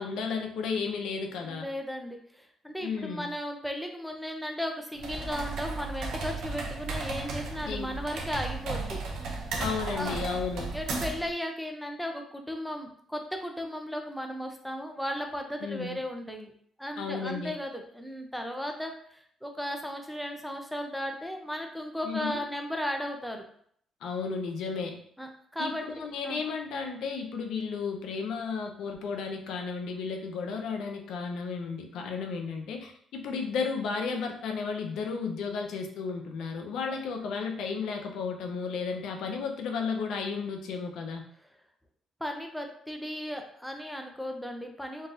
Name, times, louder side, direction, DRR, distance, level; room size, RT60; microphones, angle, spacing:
voice 1, 0.0-1.7 2.8-3.3 7.6-7.9 9.6-10.7 15.6-16.0 17.0-17.5 22.0-22.4 24.0-25.0 25.6-41.2, left 5 dB, 80° left, 4 dB, 0.6 m, -33 dB
voice 2, 1.4-9.0 9.9-10.2 10.7-16.5 16.8-23.4 25.2-25.9 26.2-26.4 36.8-36.9 42.2-45.1, equal, ahead, 3 dB, 0.6 m, -36 dB
sound 1, 5.0-11.3, right 3 dB, 80° right, 0.7 m, -35 dB
3.8 x 2.6 x 2.5 m, 0.62 s
cardioid pair, 90°, 0 cm